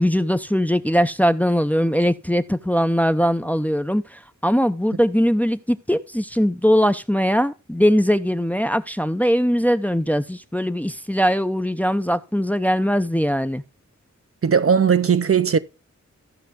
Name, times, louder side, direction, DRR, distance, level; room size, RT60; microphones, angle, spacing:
voice 1, 0.0-13.6, equal, 5° left, 0.6 m, -20 dB
voice 2, 14.4-15.6, right 7 dB, 50° right, 0.6 m, -17 dB
15.0 x 5.7 x 3.5 m
wide cardioid pair, 70°, 30 cm